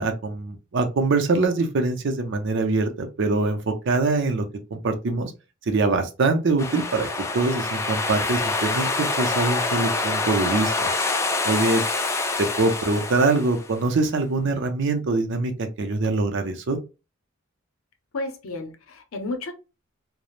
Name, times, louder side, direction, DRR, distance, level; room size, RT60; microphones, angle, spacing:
voice 1, 0.0-4.4 4.7-5.3 5.7-7.1 7.3-10.9 11.4-11.8 12.4-16.8, right 3 dB, 60° right, 0.5 m, -23 dB
sound 1, 6.6-13.9, left 3 dB, 15° left, 0.3 m, -26 dB
voice 2, 18.1-19.5, left 2 dB, 80° left, 0.6 m, -32 dB
3.0 x 2.0 x 2.4 m
head